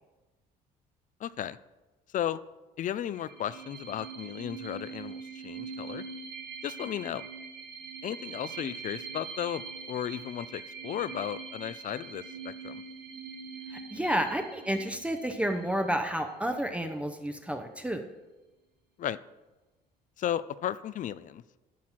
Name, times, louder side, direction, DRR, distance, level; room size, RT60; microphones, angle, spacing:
voice 1, 1.2-1.6 2.1-2.4 2.8-6.0 6.6-7.2 8.0-12.8 19.0-19.2 20.2-21.4, left 10 dB, 50° left, 17 dB, 0.5 m, -35 dB
sound 1, 3.1-16.5, right 5 dB, 75° right, 1.5 m, -43 dB
voice 2, 13.7-18.0, right 1 dB, 5° right, 5 dB, 0.8 m, -30 dB
12.0 x 4.2 x 7.4 m, 1.1 s
cardioid pair, 110°, 17 cm